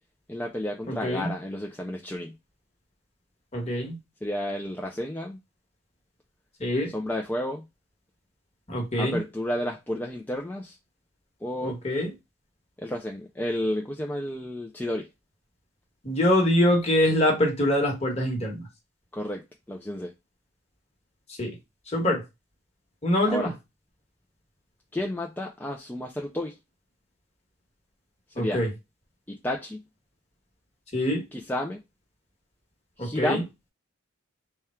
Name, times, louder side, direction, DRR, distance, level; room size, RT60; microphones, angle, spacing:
voice 1, 0.3-2.3 4.2-5.4 6.9-7.6 9.0-10.7 11.4-11.8 12.8-15.1 19.1-19.4 19.7-20.1 23.3-23.5 24.9-26.6 28.4-28.6 29.3-29.8 31.3-31.8 33.0-33.5, left 1 dB, 10° left, 0.3 m, -31 dB
voice 2, 0.9-1.3 3.5-3.9 6.6-6.9 8.7-9.2 11.6-12.1 16.0-18.6 21.4-21.5 21.9-22.2 23.0-23.5 28.4-28.7 30.9-31.2 33.0-33.4, left 1 dB, 30° left, 1.2 m, -24 dB
3.5 x 2.2 x 4.3 m
head